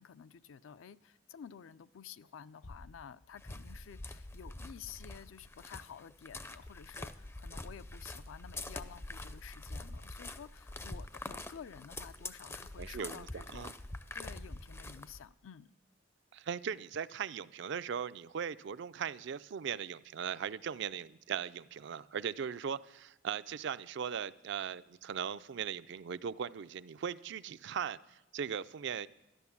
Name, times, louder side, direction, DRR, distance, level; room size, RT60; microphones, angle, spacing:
voice 1, 0.0-13.7 14.1-15.7, left 7 dB, 80° left, 0.4 m, -51 dB
sound 1, 2.6-4.6, left 2 dB, 65° left, 0.9 m, -56 dB
sound 2, 3.4-15.3, left 2 dB, 15° left, 0.4 m, -45 dB
voice 2, 12.8-13.7 16.3-29.1, right 7 dB, 65° right, 0.4 m, -39 dB
12.5 x 11.0 x 7.1 m
head